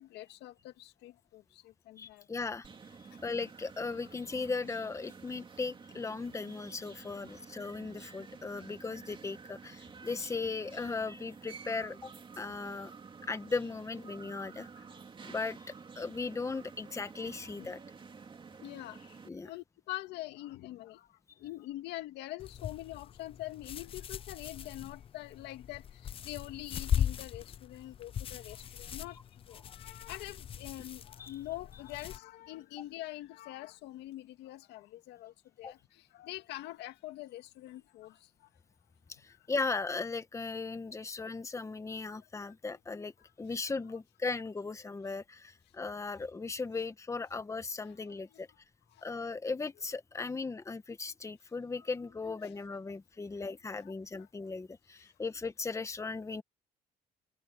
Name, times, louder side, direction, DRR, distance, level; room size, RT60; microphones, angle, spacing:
voice 1, 0.0-2.3 17.6-17.7 18.6-21.1 21.4-29.2 29.5-38.5 48.3-48.4 48.9-49.1 52.9-53.0 54.2-54.3, left 16 dB, 85° left, 2.1 m, -45 dB
voice 2, 2.0-2.7 3.2-12.9 13.2-14.7 15.2-15.6 15.9-17.8 19.2-19.5 31.2-31.4 35.6-35.7 39.1-48.5 49.0-56.4, left 4 dB, 15° left, 1.3 m, -37 dB
sound 1, 2.6-19.3, right 5 dB, 30° right, 2.6 m, -51 dB
sound 2, 22.4-32.2, left 9 dB, 35° left, 0.3 m, -39 dB
cardioid pair, 110°, 17 cm